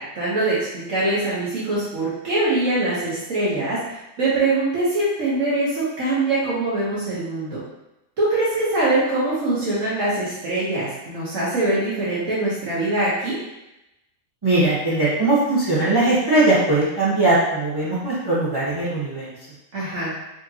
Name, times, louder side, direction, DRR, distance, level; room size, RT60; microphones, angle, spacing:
voice 1, 0.1-7.6 8.2-13.3 19.7-20.1, right 2 dB, 65° right, -9 dB, 1.4 m, -23 dB
voice 2, 14.4-19.3, right 2 dB, 20° right, -8 dB, 0.8 m, -20 dB
4.8 x 2.9 x 2.8 m, 0.94 s
omnidirectional pair, 1.5 m